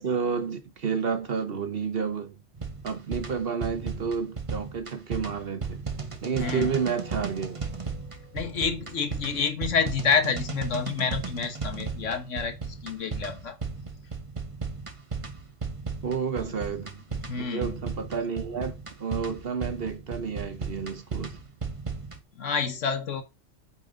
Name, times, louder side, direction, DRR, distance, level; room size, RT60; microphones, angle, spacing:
voice 1, 0.0-2.3 2.8-5.8 6.2-7.6 16.0-17.0 17.4-21.4, right 6 dB, 55° right, 1.2 m, -30 dB
sound 1, 2.6-22.2, right 4 dB, 30° right, 1.0 m, -35 dB
voice 2, 6.4-6.7 8.3-13.6 16.4-16.5 17.1-17.8 22.3-23.2, left 6 dB, 90° left, 1.6 m, -28 dB
sound 2, 6.4-16.2, right 2 dB, 40° left, 4.1 m, -52 dB
8.6 x 4.5 x 3.8 m
omnidirectional pair, 1.2 m